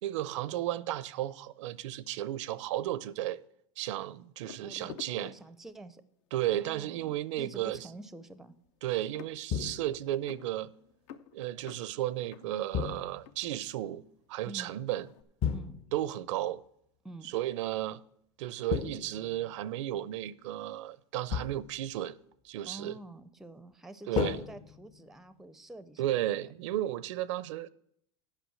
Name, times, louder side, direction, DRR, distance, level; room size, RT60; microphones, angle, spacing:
voice 1, 0.0-3.4 3.8-5.3 6.3-7.8 8.8-10.7 11.3-14.0 14.3-15.1 15.9-16.6 17.2-18.0 18.4-22.2 22.4-23.0 24.1-24.4 26.0-27.7, right 13 dB, 75° right, 0.6 m, -34 dB
sound 1, 4.4-6.0 6.7-6.9 7.2-14.3 14.6-15.2, left 9 dB, 75° left, 0.8 m, -51 dB
voice 2, 4.6-6.0 6.5-8.5 14.5-14.7 15.5-15.8 17.0-17.3 22.7-26.2, right 2 dB, 5° right, 0.5 m, -48 dB
sound 2, 9.5-10.1 12.7-13.4 15.4-16.1 18.7-19.6 21.3-21.9 24.1-25.2, left 7 dB, 40° left, 0.7 m, -34 dB
8.3 x 6.0 x 7.7 m
supercardioid pair, 135°, 16 cm